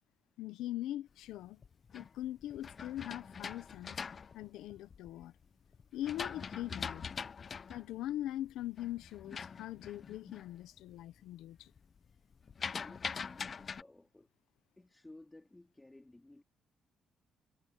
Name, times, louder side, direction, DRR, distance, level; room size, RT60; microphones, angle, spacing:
voice 1, 0.4-1.6 1.9-4.0 4.3-5.3 5.9-7.0 7.7-11.7, left 13 dB, 90° left, 0.9 m, -41 dB
sound 1, 1.4-5.2 5.7-10.6 10.9-11.3 11.6-13.8, left 6 dB, 45° left, 0.7 m, -43 dB
voice 2, 12.7-14.3 14.8-16.4, left 2 dB, 15° left, 2.8 m, -56 dB
cardioid pair, 90°, 0 cm